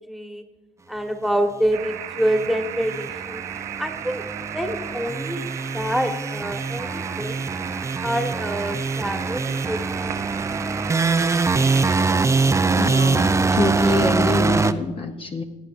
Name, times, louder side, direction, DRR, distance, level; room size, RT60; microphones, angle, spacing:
voice 1, 0.1-0.4 0.9-3.4 3.8-4.3 4.5-7.4 8.0-10.8, equal, ahead, 5 dB, 1.3 m, -27 dB
sound 1, 1.7-12.0, right 11 dB, 90° right, 0.6 m, -35 dB
sound 2, 2.4-14.7, right 4 dB, 20° right, 0.5 m, -23 dB
voice 2, 12.8-15.4, left 3 dB, 40° left, 4 dB, 0.9 m, -26 dB
17.0 x 8.8 x 2.6 m, 1.2 s
supercardioid pair, 65°, 14 cm